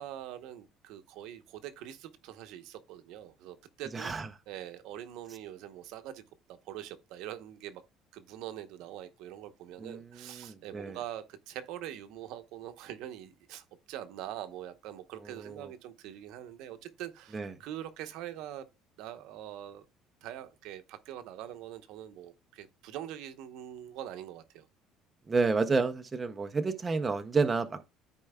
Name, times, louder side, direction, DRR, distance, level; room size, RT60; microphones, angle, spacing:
voice 1, 0.0-4.2 4.5-6.2 6.6-7.8 8.1-18.7 19.0-19.8 20.2-24.7, right 11 dB, 65° right, 0.8 m, -43 dB
voice 2, 3.9-4.3 9.8-11.0 15.4-15.7 17.3-17.5 25.3-27.8, right 4 dB, 15° right, 0.5 m, -30 dB
13.0 x 4.5 x 2.2 m
cardioid pair, 175°, 0 cm